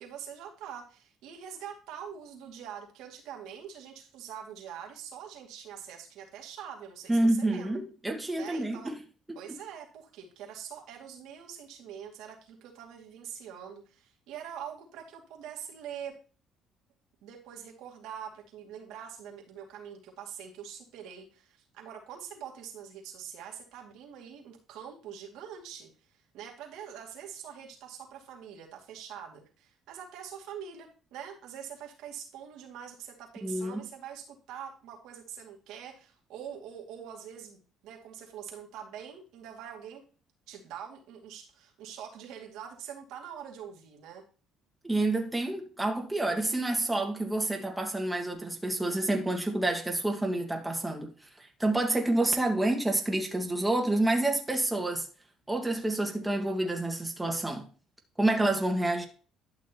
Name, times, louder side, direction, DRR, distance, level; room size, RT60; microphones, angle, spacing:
voice 1, 0.0-7.7 8.3-8.9 9.4-16.2 17.2-40.0 40.5-44.2, right 8 dB, 80° right, 2.4 m, -44 dB
voice 2, 7.1-8.9 33.4-33.8 44.8-51.1 51.4-55.1 55.5-57.7 58.2-59.1, right 2 dB, 10° right, 1.9 m, -28 dB
11.5 x 6.3 x 3.0 m
supercardioid pair, 80°, 0 cm